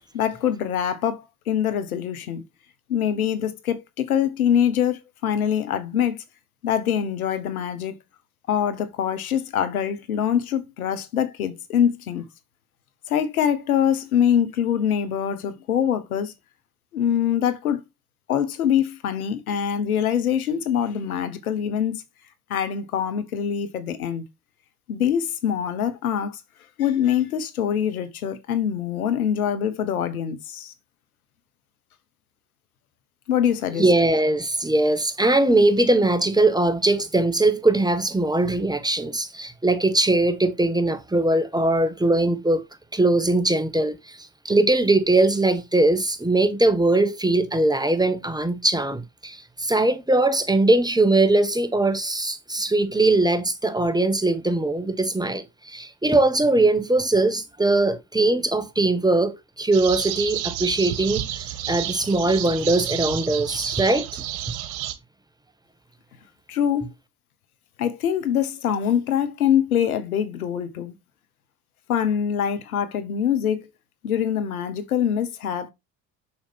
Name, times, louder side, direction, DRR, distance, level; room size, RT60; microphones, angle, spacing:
voice 1, 0.1-2.4 2.9-6.2 6.6-7.9 8.5-12.2 13.1-16.3 16.9-17.8 18.3-22.0 22.5-24.2 24.9-26.4 26.8-30.7 33.3-33.8 66.5-66.9 67.8-70.9 71.9-73.7 74.0-75.7, left 9 dB, 90° left, 1.0 m, -24 dB
voice 2, 33.8-42.6 42.9-64.2, right 2 dB, 10° right, 1.4 m, -21 dB
sound 1, 59.7-64.9, right 12 dB, 70° right, 1.5 m, -30 dB
7.2 x 6.5 x 3.3 m
hypercardioid pair, 60°, 42 cm